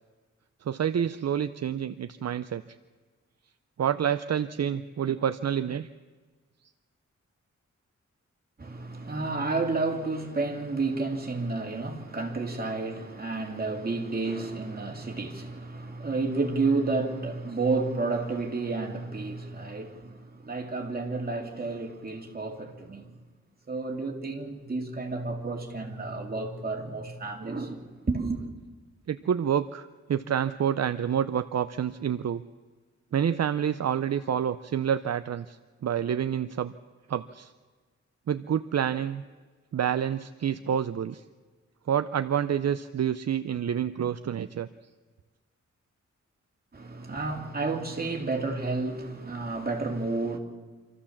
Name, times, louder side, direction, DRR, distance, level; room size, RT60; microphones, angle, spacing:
voice 1, 0.7-2.6 3.8-5.9 29.1-32.4 33.1-35.6 35.8-36.7 37.1-37.5 38.3-39.2 39.7-41.2 41.9-44.7, right 9 dB, 60° right, 0.6 m, -28 dB
voice 2, 8.6-23.1 23.7-28.4 46.7-50.4, right 3 dB, 30° right, 2.7 m, -31 dB
26.0 x 14.0 x 7.3 m
wide cardioid pair, 145°, 29 cm